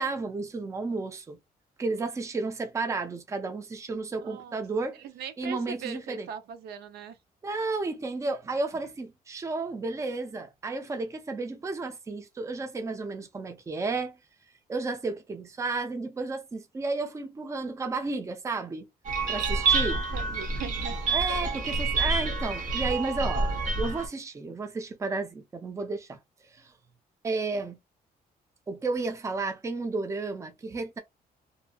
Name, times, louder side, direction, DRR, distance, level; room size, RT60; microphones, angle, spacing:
voice 1, 0.0-1.4 1.8-5.0 5.4-6.3 7.4-14.2 14.7-18.9 19.3-20.0 21.1-26.2 26.6-26.7 27.2-27.8 28.7-31.0, right 3 dB, 20° right, 0.5 m, -32 dB
voice 2, 4.2-4.6 4.9-7.2 19.8-21.2, right 7 dB, 85° right, 0.6 m, -40 dB
sound 1, 19.0-24.1, right 4 dB, 55° right, 0.8 m, -28 dB
2.6 x 2.6 x 2.2 m
cardioid pair, 150°, 16 cm